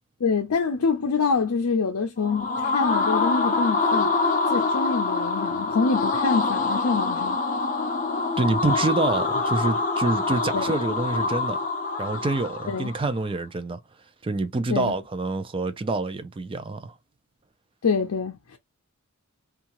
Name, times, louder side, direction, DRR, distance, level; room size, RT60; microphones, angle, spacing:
voice 1, 0.2-4.1 4.5-7.4 10.5-10.8 12.7-12.9 14.7-14.9 17.8-18.6, left 5 dB, 85° left, 0.5 m, -26 dB
sound 1, 2.2-13.0, left 3 dB, 35° left, 0.5 m, -25 dB
voice 2, 8.4-11.6 12.0-13.8 14.2-16.9, right 3 dB, 25° right, 0.4 m, -26 dB
2.7 x 2.4 x 2.9 m
head